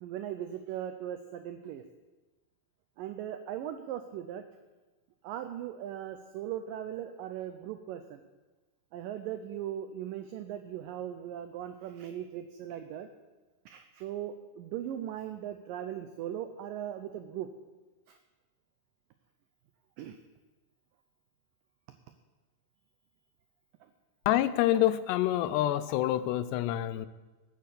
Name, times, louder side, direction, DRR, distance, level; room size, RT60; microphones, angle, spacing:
voice 1, 0.0-1.8 3.0-4.4 5.2-8.2 8.9-13.1 13.7-17.5 18.1-18.2 20.0-20.2, right 10 dB, 90° right, 8 dB, 1.9 m, -39 dB
voice 2, 24.3-27.1, left 13 dB, 90° left, 15 dB, 2.8 m, -27 dB
13.0 x 9.2 x 6.9 m, 1.2 s
omnidirectional pair, 4.8 m